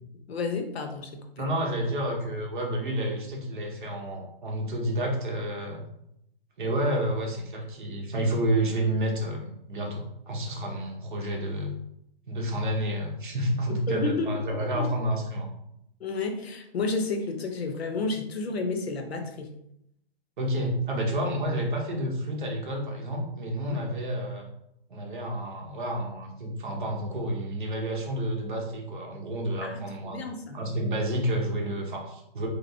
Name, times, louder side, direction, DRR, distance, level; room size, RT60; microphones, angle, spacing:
voice 1, 0.3-1.5 13.7-14.4 14.7-14.8 16.0-19.6 23.7-23.9 29.6-30.6, left 3 dB, 80° left, 5 dB, 0.8 m, -31 dB
voice 2, 1.4-5.8 6.6-11.7 12.3-15.5 20.4-24.4 24.9-30.2 30.5-32.5, right 1 dB, 55° right, 0 dB, 0.9 m, -30 dB
3.4 x 2.9 x 2.7 m, 0.78 s
hypercardioid pair, 175°, 31 cm